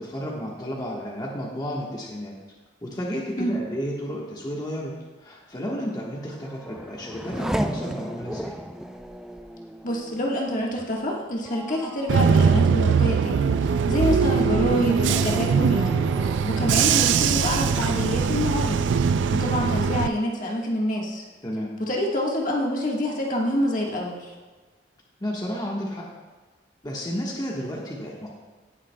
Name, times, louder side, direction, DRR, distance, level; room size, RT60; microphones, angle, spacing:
voice 1, 0.0-2.3 2.8-4.9 5.2-8.5 21.4-21.7 25.2-26.1 26.8-28.3, equal, 20° left, -3 dB, 1.2 m, -32 dB
Race car auto racing / Accelerating revving vroom, 6.1-19.2 19.6-20.3, equal, 5° right, 0.3 m, -37 dB
voice 2, 9.8-13.5 13.9-16.0 16.4-18.8 19.3-21.2 21.8-24.3, equal, 45° left, -2 dB, 1.4 m, -26 dB
Bus / Engine, 12.1-20.1, right 6 dB, 80° right, 0.4 m, -21 dB
18.0 x 7.4 x 2.2 m, 1.3 s
head